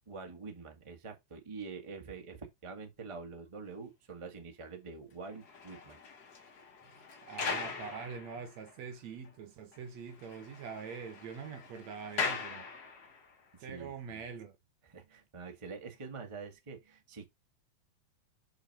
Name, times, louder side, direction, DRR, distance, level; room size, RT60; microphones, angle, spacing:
voice 1, 0.1-6.0 13.5-14.2 14.8-17.3, right 4 dB, 25° right, 0.7 m, -46 dB
sound 1, 5.2-8.9 9.2-9.3 9.7-9.8 10.1-13.3 14.0-14.2, left 5 dB, 50° left, 1.3 m, -41 dB
voice 2, 7.2-12.7 13.6-14.5, right 6 dB, 70° right, 2.3 m, -44 dB
6.0 x 6.0 x 2.9 m
omnidirectional pair, 3.4 m